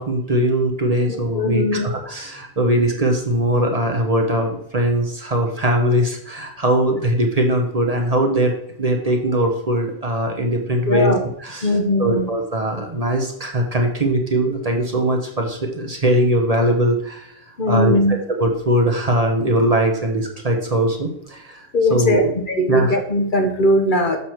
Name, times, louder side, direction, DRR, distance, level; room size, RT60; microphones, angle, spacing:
voice 1, 0.0-8.5 8.8-11.1 11.4-17.3 17.7-22.3 22.6-23.0, right 1 dB, 35° right, 3 dB, 1.0 m, -20 dB
voice 2, 1.1-1.9 10.9-11.2 11.6-12.3 17.6-18.1 21.7-24.2, left 1 dB, 50° left, 4 dB, 1.1 m, -19 dB
6.9 x 6.1 x 4.5 m, 0.73 s
omnidirectional pair, 1.1 m